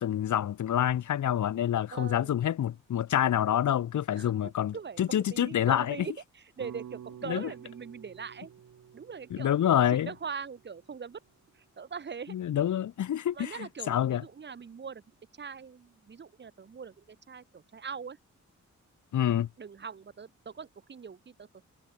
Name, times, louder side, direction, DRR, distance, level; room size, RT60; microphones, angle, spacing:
voice 1, 0.0-6.0 7.3-7.5 9.3-10.1 12.3-14.2 19.1-19.5, left 10 dB, 75° left, 1.1 m, -27 dB
voice 2, 1.9-2.3 4.2-8.5 8.9-11.2 11.5-12.4 13.3-15.0 15.4-18.2 19.6-21.7, right 6 dB, 35° right, 0.9 m, -42 dB
sound 1, 6.6-10.9, right 9 dB, 70° right, 1.7 m, -49 dB
wide cardioid pair, 130°, 30 cm